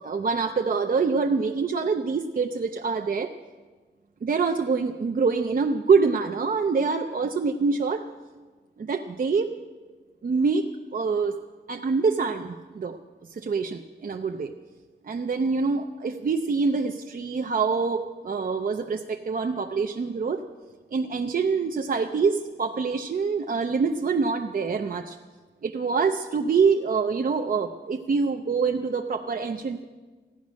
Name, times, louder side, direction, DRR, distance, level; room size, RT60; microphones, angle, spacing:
voice 1, 0.0-3.3 4.2-8.0 8.8-9.5 10.2-11.3 11.7-13.0 13.3-14.5 15.0-20.4 20.9-25.2 25.6-29.8, right 5 dB, 50° right, 4 dB, 0.6 m, -25 dB
14.5 x 10.5 x 6.3 m, 1.3 s
wide cardioid pair, 125°, 19 cm